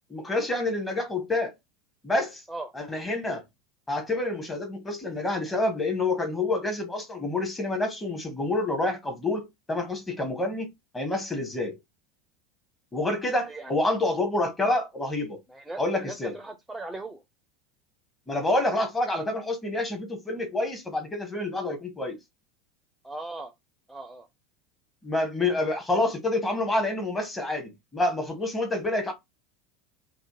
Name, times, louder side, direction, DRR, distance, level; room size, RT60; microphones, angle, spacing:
voice 1, 0.1-1.5 2.0-2.4 2.7-3.4 3.9-10.7 10.9-11.8 12.9-15.4 15.8-16.3 18.3-22.2 25.0-29.1, left 2 dB, 15° left, 1.0 m, -28 dB
voice 2, 15.5-17.2 23.0-23.5 23.9-24.3, right 2 dB, 5° right, 0.5 m, -38 dB
2.6 x 2.1 x 2.9 m
figure-of-eight pair, 80°, 0 cm